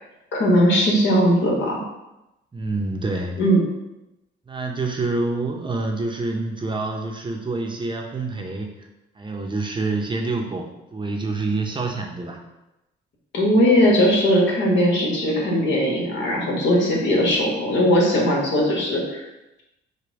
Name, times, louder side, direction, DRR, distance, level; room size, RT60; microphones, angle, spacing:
voice 1, 0.3-1.8 3.4-3.6 13.3-19.2, equal, 70° left, -2 dB, 1.5 m, -19 dB
voice 2, 2.5-3.4 4.5-8.9 9.2-12.4, right 3 dB, 25° right, 2 dB, 0.7 m, -27 dB
5.0 x 2.2 x 4.6 m, 0.94 s
cardioid pair, 90°, 20 cm